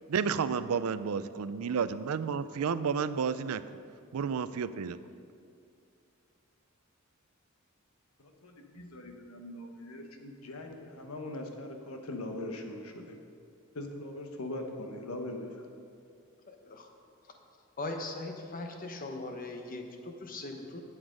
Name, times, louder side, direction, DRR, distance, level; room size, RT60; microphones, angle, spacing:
voice 1, 0.1-3.6 4.1-5.0, right 6 dB, 85° right, 14 dB, 0.4 m, -31 dB
voice 2, 8.2-13.2 13.7-15.6, left 1 dB, 85° left, 4 dB, 1.2 m, -41 dB
voice 3, 16.5-16.9 17.8-20.8, left 2 dB, 40° left, 4 dB, 1.0 m, -40 dB
11.5 x 8.0 x 5.2 m, 2.4 s
head